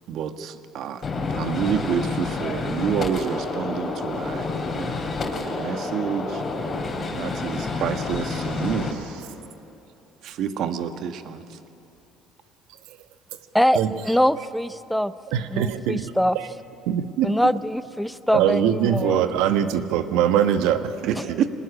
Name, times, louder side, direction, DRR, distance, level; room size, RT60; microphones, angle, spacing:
voice 1, 0.1-6.4 7.1-9.0 10.2-11.6 21.0-21.5, right 8 dB, 60° right, 1.5 m, -29 dB
Gunshot gunfire, 1.0-8.9, left 3 dB, 35° left, 3.7 m, -29 dB
voice 2, 14.0-15.1 15.5-16.4 17.2-19.3 21.2-21.3, equal, ahead, 0.5 m, -23 dB
voice 3, 15.3-16.1 16.9-17.5 18.3-21.4, right 9 dB, 80° right, 1.2 m, -22 dB
24.5 x 19.5 x 9.9 m
cardioid pair, 105°, 0 cm